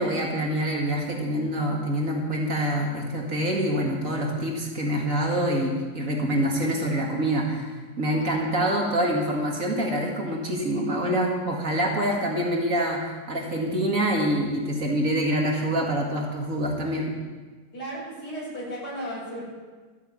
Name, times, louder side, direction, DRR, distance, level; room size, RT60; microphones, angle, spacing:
voice 1, 0.0-17.1, right 1 dB, 45° right, -1 dB, 2.3 m, -26 dB
voice 2, 17.7-19.4, right 1 dB, 60° left, -6 dB, 6.8 m, -34 dB
14.0 x 8.7 x 8.6 m, 1.4 s
omnidirectional pair, 2.0 m